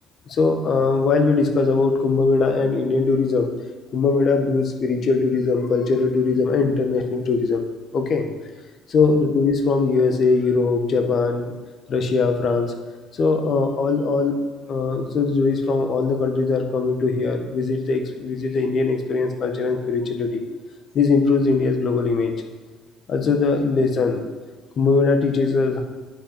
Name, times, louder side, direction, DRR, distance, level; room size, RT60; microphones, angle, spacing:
voice 1, 0.3-3.5 3.9-7.6 7.9-8.3 8.9-11.5 11.9-12.7 13.1-14.3 14.7-20.4 20.9-22.3 23.1-24.2 24.8-25.8, left 4 dB, 50° left, 5 dB, 1.6 m, -20 dB
9.7 x 5.5 x 7.6 m, 1.4 s
hypercardioid pair, 60°, 0 cm